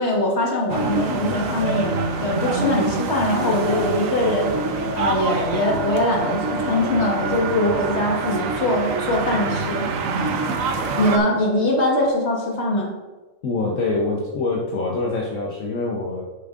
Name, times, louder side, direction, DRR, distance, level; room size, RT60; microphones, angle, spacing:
voice 1, 0.0-4.5 4.9-9.9 11.0-12.9, left 1 dB, 55° left, -1 dB, 1.8 m, -22 dB
sound 1, 0.7-11.2, right 4 dB, 75° right, 1.2 m, -25 dB
voice 2, 13.4-16.2, left 3 dB, 75° left, -2 dB, 1.3 m, -25 dB
11.0 x 6.9 x 2.5 m, 1.3 s
omnidirectional pair, 1.4 m